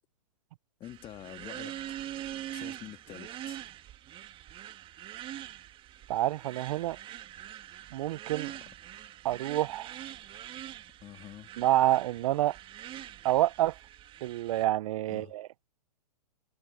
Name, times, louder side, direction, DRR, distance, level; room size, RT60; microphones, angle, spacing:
voice 1, 0.8-1.8 2.5-3.6 8.5-8.6 11.0-11.5 15.1-15.3, left 13 dB, 25° left, 2.0 m, -47 dB
sound 1, 0.8-14.7, right 12 dB, 25° right, 1.7 m, -44 dB
voice 2, 6.1-7.0 7.9-8.5 9.2-9.9 11.6-12.6 13.2-13.7 14.2-15.5, right 15 dB, 55° right, 0.5 m, -28 dB
hypercardioid pair, 130°, 21 cm